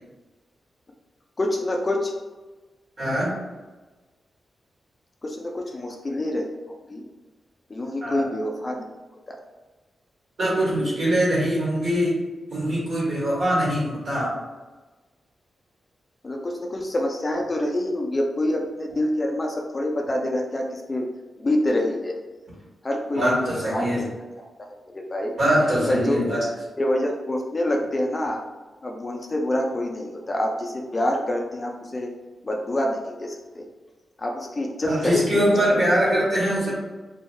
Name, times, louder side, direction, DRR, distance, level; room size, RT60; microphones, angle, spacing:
voice 1, 1.4-2.1 5.2-7.0 7.7-8.8 9.3-9.4 16.2-21.1 21.4-22.2 22.8-24.0 24.6-25.4 25.8-26.2 26.8-28.4 28.8-32.1 32.4-33.6 34.2-35.8, left 1 dB, 25° left, 1 dB, 0.3 m, -26 dB
voice 2, 3.0-3.3 8.0-8.2 10.4-12.2 12.5-14.3 23.1-24.0 25.4-26.4 34.9-36.8, equal, 55° right, -6 dB, 1.2 m, -22 dB
2.6 x 2.2 x 3.1 m, 1.2 s
wide cardioid pair, 150°, 0 cm